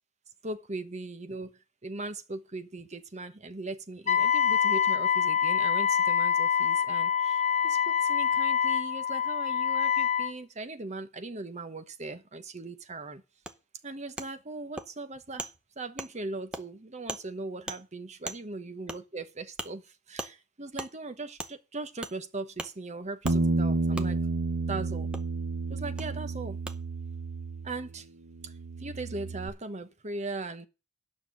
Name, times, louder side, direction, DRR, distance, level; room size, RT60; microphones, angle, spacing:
voice 1, 0.4-13.2 13.8-15.5 15.8-24.2 24.7-25.1 25.7-26.6 27.6-28.1 28.4-30.7, right 2 dB, 30° right, 1.0 m, -39 dB
Wind instrument woodwind instrument, 4.1-10.3, left 8 dB, 35° left, 0.6 m, -25 dB
Wood, 13.5-13.6 14.2-14.3 14.8-14.9 15.4-15.5 16.0-16.1 16.5-16.6 17.1-17.2 17.7-17.8 18.3-18.4 18.9-19.0 19.6-19.7 20.2-20.3 20.8-20.9 21.4-21.5 22.0-22.2 22.6-22.7 23.2-23.4 24.0-24.1 25.1-25.2 26.0-26.1 26.7-26.8, right 1 dB, 5° right, 0.7 m, -37 dB
Bass guitar, 23.2-28.0 28.3-29.5, right 3 dB, 90° right, 1.1 m, -31 dB
9.3 x 5.9 x 7.6 m
head